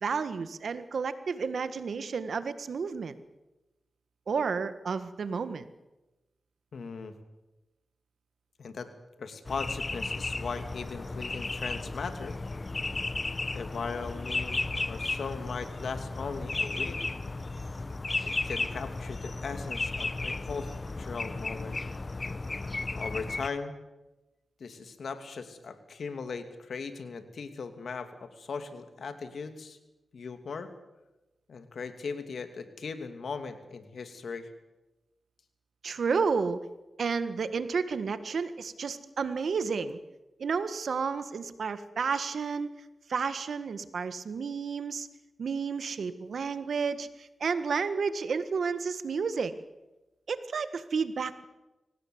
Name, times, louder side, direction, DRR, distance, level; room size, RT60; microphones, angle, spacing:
voice 1, 0.0-3.2 4.3-5.7 35.8-36.6 37.0-40.0 40.4-42.7 43.1-45.1 45.4-49.5 50.3-51.4, right 5 dB, 75° right, 12 dB, 1.6 m, -31 dB
voice 2, 6.7-7.1 8.6-8.9 9.2-12.4 13.5-17.0 18.2-20.7 21.0-21.8 23.0-23.8 24.6-29.8 30.1-30.7 31.5-34.5, left 5 dB, 75° left, 8 dB, 2.7 m, -38 dB
sound 1, 9.4-23.5, left 3 dB, 40° left, 1.1 m, -34 dB
24.5 x 18.5 x 8.0 m, 1.0 s
cardioid pair, 55°, 0 cm